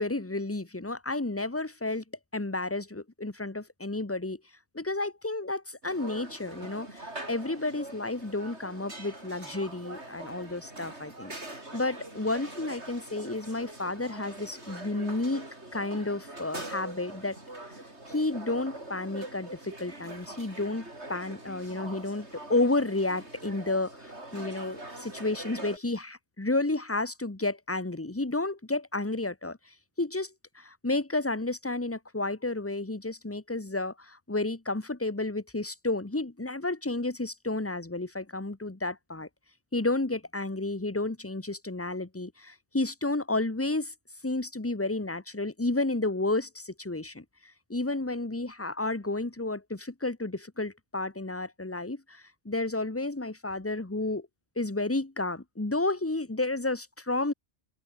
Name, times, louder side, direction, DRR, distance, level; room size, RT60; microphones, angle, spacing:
voice 1, 0.0-2.0 2.3-4.4 4.7-17.4 18.1-39.3 39.7-43.9 44.2-54.3 54.6-57.3, left 2 dB, 10° left, 1.3 m, -31 dB
sound 1, 5.8-25.8, right 2 dB, 70° right, 6.2 m, -43 dB
open air
omnidirectional pair, 1.2 m